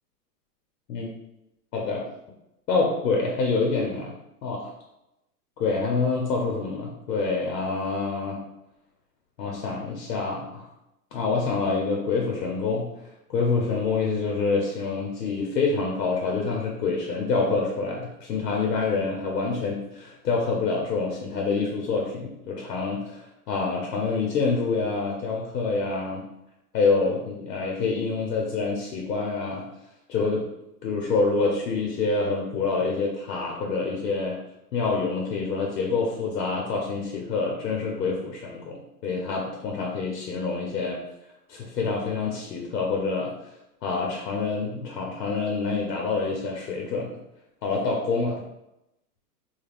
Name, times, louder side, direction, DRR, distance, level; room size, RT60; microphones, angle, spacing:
voice 1, 1.7-2.1 2.7-4.1 4.4-4.7 5.6-8.4 9.4-10.7 11.1-12.9 13.3-26.3 26.7-29.6 30.1-30.5 30.8-34.4 34.7-41.0 41.5-43.3 43.8-47.1 47.6-48.4, left 4 dB, 90° left, -1 dB, 0.8 m, -26 dB
2.4 x 2.2 x 3.4 m, 0.88 s
hypercardioid pair, 170°, 47 cm